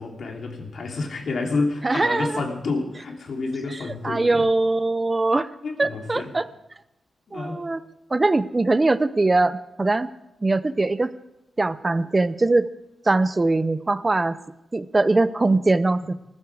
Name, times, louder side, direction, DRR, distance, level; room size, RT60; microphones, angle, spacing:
voice 1, 0.0-4.5 5.6-6.3 7.3-7.6, left 3 dB, 60° left, 1 dB, 3.1 m, -29 dB
voice 2, 1.8-2.4 4.0-5.5 5.8-6.5 7.3-7.8 8.1-10.1 10.4-11.1 11.6-12.7 13.1-14.4 14.7-16.1, right 2 dB, 20° right, 15 dB, 0.6 m, -21 dB
19.5 x 14.0 x 4.9 m, 0.91 s
wide cardioid pair, 140°, 0 cm